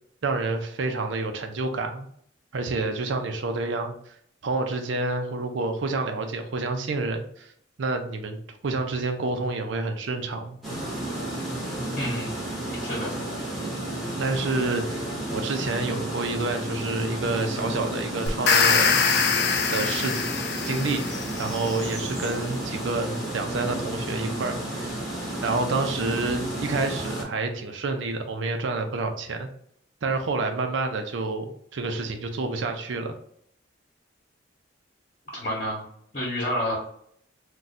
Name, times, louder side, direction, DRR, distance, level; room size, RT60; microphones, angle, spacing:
voice 1, 0.2-2.1 2.5-4.1 4.4-7.5 7.8-10.6 14.2-19.0 19.7-20.2 20.7-21.0 21.4-25.0 25.4-29.5 30.0-33.2, right 3 dB, 75° right, 6 dB, 0.5 m, -28 dB
sound 1, 10.6-27.2, right 1 dB, ahead, 0.8 m, -32 dB
voice 2, 11.9-12.4 12.8-13.1 35.3-35.8 36.1-36.7, equal, 45° left, -4 dB, 1.0 m, -29 dB
sound 2, 18.3-21.4, left 5 dB, 60° left, 0.4 m, -23 dB
2.5 x 2.3 x 4.0 m, 0.67 s
head